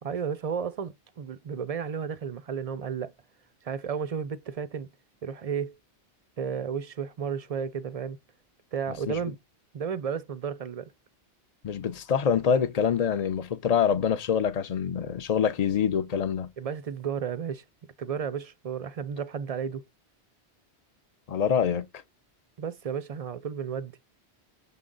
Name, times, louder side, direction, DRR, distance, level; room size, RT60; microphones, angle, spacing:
voice 1, 0.0-3.1 3.6-4.9 5.2-5.8 6.4-8.2 8.7-9.4 9.7-10.9 16.6-17.6 18.0-19.9 22.6-24.0, right 7 dB, 45° right, 0.5 m, -33 dB
voice 2, 11.6-16.5 21.3-21.9, left 7 dB, 45° left, 0.6 m, -25 dB
6.8 x 3.7 x 3.8 m
omnidirectional pair, 1.1 m